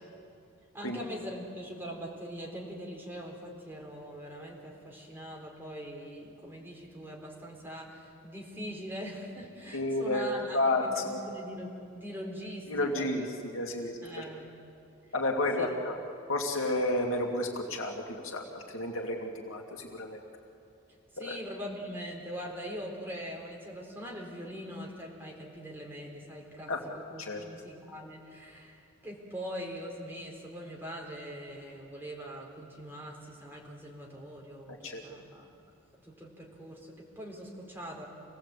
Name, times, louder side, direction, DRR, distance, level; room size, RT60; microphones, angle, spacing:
voice 1, 0.7-13.2 14.0-14.5 15.6-15.7 20.9-35.5 36.0-38.1, equal, 10° right, -2 dB, 4.0 m, -42 dB
voice 2, 9.7-11.2 12.7-14.2 15.1-15.9 16.3-20.2 21.2-21.4 26.7-26.8 27.2-27.4 34.7-35.0, left 2 dB, 70° left, 1 dB, 2.6 m, -31 dB
27.0 x 18.0 x 8.4 m, 2.5 s
head